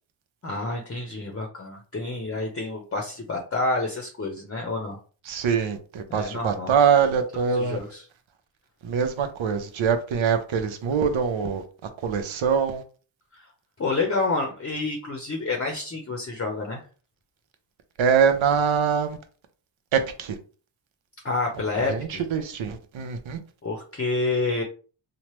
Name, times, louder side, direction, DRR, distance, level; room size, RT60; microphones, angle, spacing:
voice 1, 0.4-5.0 6.1-6.7 7.3-8.0 13.3-13.4 13.8-16.8 21.2-22.2 23.6-24.6, left 3 dB, 30° left, 0.6 m, -28 dB
voice 2, 5.3-7.8 8.8-11.6 12.0-12.8 18.0-19.2 19.9-20.4 21.8-23.4, right 6 dB, 70° right, 0.7 m, -23 dB
3.1 x 2.0 x 3.0 m
cardioid pair, 75°, 48 cm